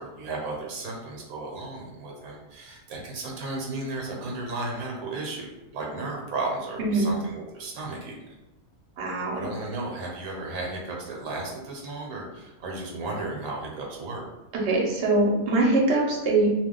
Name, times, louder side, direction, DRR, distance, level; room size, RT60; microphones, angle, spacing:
voice 1, 0.0-8.4 9.4-14.3, right 2 dB, 80° right, -1 dB, 1.1 m, -34 dB
voice 2, 6.8-7.1 9.0-9.5 14.6-16.5, right 2 dB, 55° right, -2 dB, 0.9 m, -23 dB
2.5 x 2.3 x 3.6 m, 1.0 s
omnidirectional pair, 1.5 m